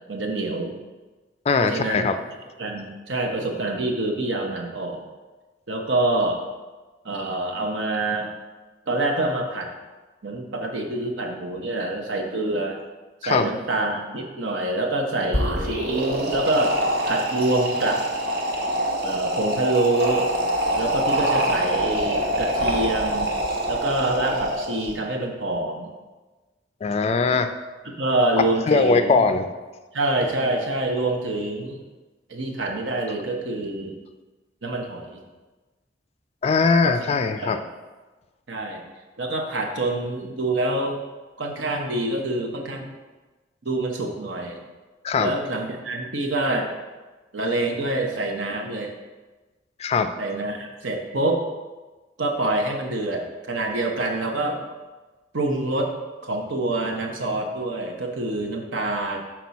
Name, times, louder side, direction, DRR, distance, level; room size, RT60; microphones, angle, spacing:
voice 1, 0.1-0.7 1.6-2.1 2.6-5.0 5.7-6.4 7.0-8.3 8.9-9.7 10.2-12.8 13.2-16.7 17.1-18.0 19.0-20.3 20.8-23.3 23.7-25.9 27.8-29.3 29.9-31.8 32.3-34.0 34.6-35.2 36.8-37.0 37.4-37.6 38.5-38.8 39.2-41.0 41.4-42.9 43.6-44.6 45.2-46.7 47.3-48.9 50.2-51.4 52.2-54.6 55.3-55.9 56.2-59.2, right 2 dB, 80° right, 2 dB, 0.9 m, -26 dB
voice 2, 1.5-2.2 13.2-13.5 26.8-27.5 28.7-29.5 36.4-37.6 45.0-45.3 49.8-50.1, left 4 dB, 35° left, 9 dB, 0.3 m, -20 dB
sound 1, 15.2-24.9, right 1 dB, 55° right, 0.9 m, -25 dB
6.1 x 4.5 x 4.1 m, 1.2 s
head